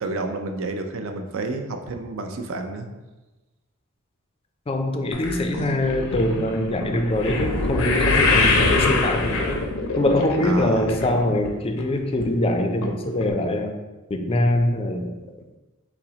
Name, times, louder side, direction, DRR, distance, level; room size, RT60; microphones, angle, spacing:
voice 1, 0.0-2.9 10.4-10.9, right 3 dB, 65° right, 5 dB, 0.5 m, -30 dB
voice 2, 4.7-9.6 10.0-13.8 14.1-15.2, left 1 dB, 25° left, 5 dB, 0.4 m, -23 dB
sound 1, 5.1-11.5 11.8-12.3 12.8-12.9 13.2-13.3, left 3 dB, 75° left, 0.6 m, -23 dB
5.7 x 2.1 x 3.8 m, 1.1 s
head